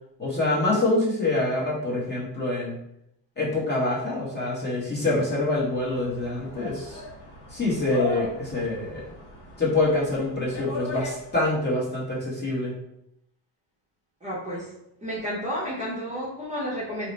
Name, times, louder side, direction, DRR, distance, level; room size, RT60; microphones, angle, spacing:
voice 1, 0.2-2.8 3.4-7.0 7.5-9.1 9.6-12.7, left 2 dB, 20° left, -6 dB, 0.9 m, -25 dB
sound 1, 5.3-11.6, left 1 dB, 70° left, 1.4 m, -38 dB
voice 2, 14.2-14.7 15.0-17.1, equal, 15° right, -8 dB, 0.7 m, -31 dB
2.9 x 2.1 x 3.9 m, 0.79 s
cardioid pair, 150°, 47 cm